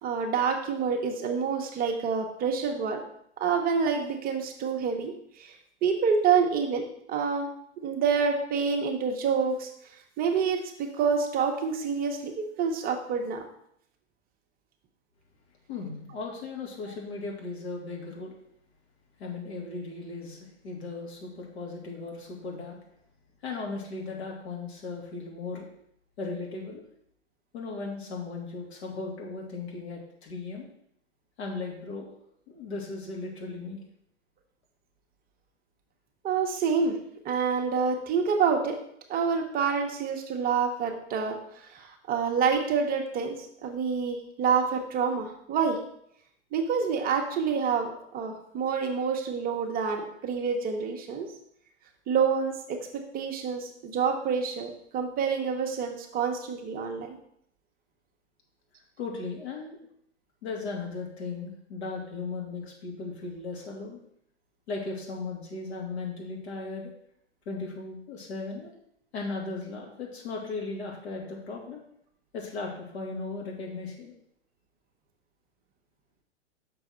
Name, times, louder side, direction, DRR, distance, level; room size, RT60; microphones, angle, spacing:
voice 1, 0.0-3.0 3.4-7.5 7.8-9.7 10.2-13.4 36.2-37.0 37.2-38.8 39.1-45.8 46.5-51.3 52.1-57.2, right 6 dB, 25° right, 3 dB, 0.9 m, -27 dB
voice 2, 15.7-18.3 19.2-22.8 23.4-25.7 26.2-26.8 27.5-30.6 31.4-32.1 32.5-33.8 59.0-59.8 60.4-64.0 64.7-66.9 67.5-68.7 69.1-71.8 72.3-74.1, left 3 dB, 65° left, -1 dB, 2.8 m, -37 dB
6.1 x 4.6 x 6.5 m, 0.71 s
hypercardioid pair, 110°, 35 cm